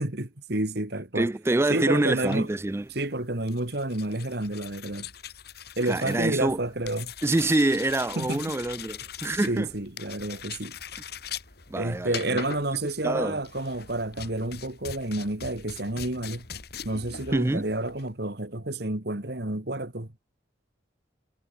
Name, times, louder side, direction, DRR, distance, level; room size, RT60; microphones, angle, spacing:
voice 1, 0.0-1.3 1.7-2.5 2.9-5.1 5.8-7.1 8.2-8.6 9.5-10.7 11.8-16.5 16.8-20.1, right 1 dB, 55° right, 2.3 m, -30 dB
voice 2, 1.2-2.9 5.9-6.6 7.2-9.7 11.7-12.4 13.0-13.4 17.3-17.6, right 2 dB, 15° right, 0.3 m, -26 dB
sound 1, 2.1-18.1, left 7 dB, 55° left, 3.2 m, -42 dB
head